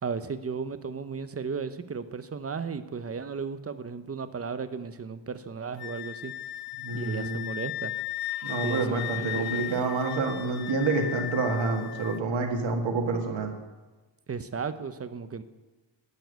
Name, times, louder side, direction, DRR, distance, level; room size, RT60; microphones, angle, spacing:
voice 1, 0.0-6.3 6.9-7.9 8.6-8.9 9.1-9.7 14.3-15.4, right 5 dB, 35° right, 11 dB, 0.6 m, -35 dB
Wind instrument woodwind instrument, 5.8-12.2, left 14 dB, 60° left, 0.5 m, -36 dB
voice 2, 6.7-7.5 8.4-13.5, right 3 dB, 90° right, 2 dB, 1.9 m, -28 dB
10.5 x 7.1 x 9.1 m, 1.2 s
wide cardioid pair, 155°, 45 cm